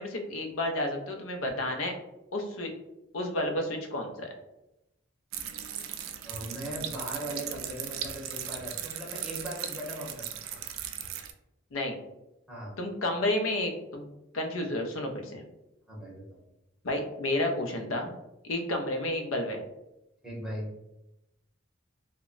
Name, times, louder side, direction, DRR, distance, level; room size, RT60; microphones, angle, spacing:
voice 1, 0.0-1.9 2.3-2.7 3.1-4.3 11.7-12.0 12.8-14.1 14.3-15.4 16.8-18.1 18.4-19.6, left 1 dB, 90° left, 3 dB, 0.5 m, -31 dB
sound 1, 5.3-11.3, right 9 dB, 85° right, 0.3 m, -38 dB
voice 2, 6.2-10.6 12.5-12.8 15.9-16.4 20.2-20.7, equal, 5° right, -6 dB, 0.7 m, -39 dB
2.1 x 2.0 x 3.6 m, 0.89 s
head